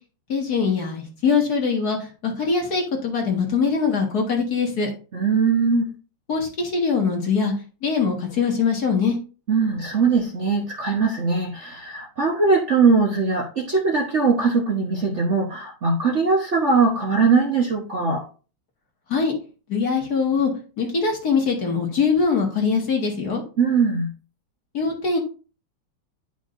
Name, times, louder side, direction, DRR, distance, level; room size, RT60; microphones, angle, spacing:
voice 1, 0.3-4.9 6.3-7.5 7.8-9.2 19.1-19.3 19.7-20.5 20.8-23.4 24.7-25.2, left 5 dB, 50° left, 1 dB, 2.1 m, -22 dB
voice 2, 5.1-5.9 9.5-18.2 23.6-24.1, right 4 dB, 45° right, 0 dB, 1.1 m, -20 dB
10.5 x 5.4 x 2.5 m, 0.35 s
omnidirectional pair, 2.2 m